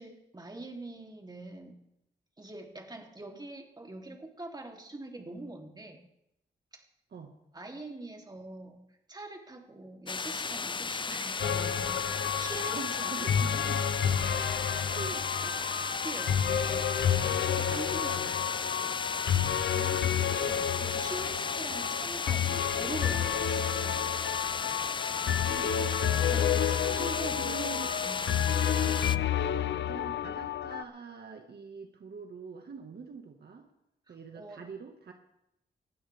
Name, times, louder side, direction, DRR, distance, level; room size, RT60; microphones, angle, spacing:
voice 1, 0.0-1.7 2.4-6.0 6.7-6.8 7.5-8.8 9.1-12.1 12.4-13.6 16.0-18.4 20.8-23.6 26.3-28.3 34.1-34.6, right 2 dB, 25° right, 1 dB, 3.3 m, -43 dB
sound 1, 10.1-29.2, left 4 dB, 25° left, 0.4 m, -35 dB
sound 2, 11.4-30.8, left 9 dB, 85° left, 0.7 m, -30 dB
voice 2, 12.7-13.8 14.8-15.5 17.6-17.9 19.6-20.8 23.8-24.2 25.2-26.1 26.9-27.9 29.8-33.7 34.1-35.1, right 5 dB, 65° right, 3 dB, 1.8 m, -45 dB
20.5 x 15.0 x 3.6 m, 0.82 s
cardioid pair, 75°, 18 cm